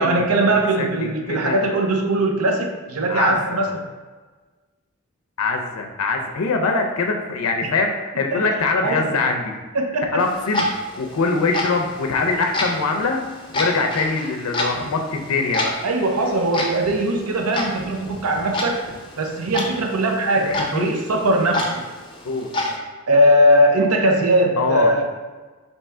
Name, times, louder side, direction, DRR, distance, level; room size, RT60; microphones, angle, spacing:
voice 1, 0.0-3.9 7.6-7.7 8.3-8.4 8.8-9.2 9.7-10.2 15.8-18.8 19.2-21.8 23.1-25.0, right 1 dB, 90° right, 2 dB, 0.6 m, -20 dB
voice 2, 1.3-1.6 3.1-3.6 5.4-9.5 10.1-10.6 11.0-13.2 13.5-15.7 20.4-21.0 22.2-22.5 24.6-24.9, left 3 dB, 85° left, 3 dB, 0.5 m, -23 dB
Clock, 10.2-22.8, left 1 dB, 20° left, 0.5 m, -30 dB
3.5 x 2.8 x 4.3 m, 1.3 s
head